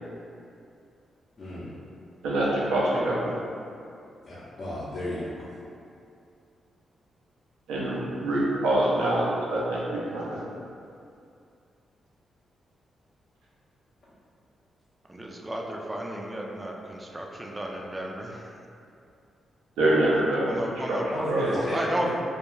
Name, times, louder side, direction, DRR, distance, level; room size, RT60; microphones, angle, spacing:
voice 1, 1.4-1.7 4.2-5.5 21.1-22.1, left 1 dB, 55° left, -10 dB, 0.6 m, -33 dB
voice 2, 2.2-3.3 7.7-10.4 19.8-21.0 21.3-21.5, right 1 dB, 90° right, -6 dB, 0.5 m, -25 dB
voice 3, 15.1-18.5 20.5-21.1 21.5-22.1, right 1 dB, 25° right, -1 dB, 0.4 m, -33 dB
2.3 x 2.2 x 3.0 m, 2.5 s
supercardioid pair, 50°, 0 cm